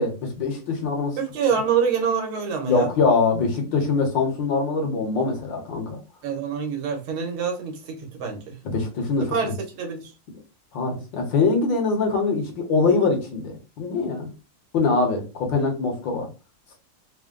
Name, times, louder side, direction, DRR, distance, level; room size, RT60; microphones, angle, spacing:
voice 1, 0.0-1.2 2.7-6.0 8.6-9.4 10.7-14.3 14.7-16.3, left 4 dB, 65° left, 1.7 m, -23 dB
voice 2, 1.2-2.9 6.2-8.6 9.2-10.1, right 6 dB, 85° right, 1.9 m, -26 dB
4.4 x 2.2 x 3.7 m
omnidirectional pair, 2.3 m